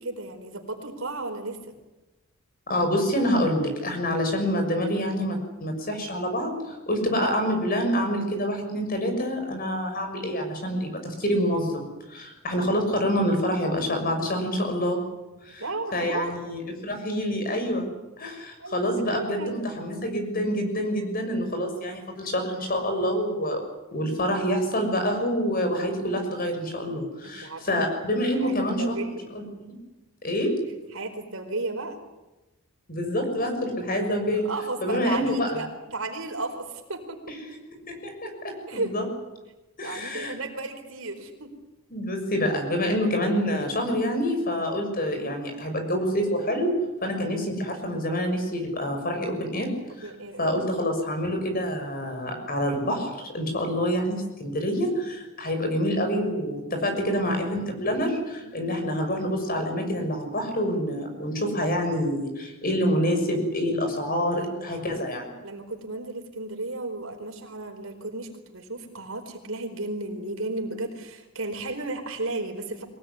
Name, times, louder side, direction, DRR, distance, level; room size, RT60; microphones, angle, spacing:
voice 1, 0.0-1.7 15.6-16.3 18.6-19.6 27.2-27.9 28.2-29.2 30.9-32.0 34.3-37.4 38.7-38.9 39.8-41.5 50.0-50.6 57.0-57.4 58.4-58.8 64.3-64.9 65.4-72.8, right 2 dB, 70° right, 4 dB, 4.7 m, -34 dB
voice 2, 2.7-15.0 15.4-15.6 15.9-17.9 18.2-23.6 23.9-29.0 29.3-29.8 30.2-30.5 32.9-34.5 34.8-35.5 37.9-39.1 39.8-40.3 41.9-46.7 47.0-49.7 50.0-50.1 50.4-65.3, equal, 45° left, 5 dB, 6.5 m, -27 dB
24.5 x 19.0 x 9.8 m, 1.0 s
head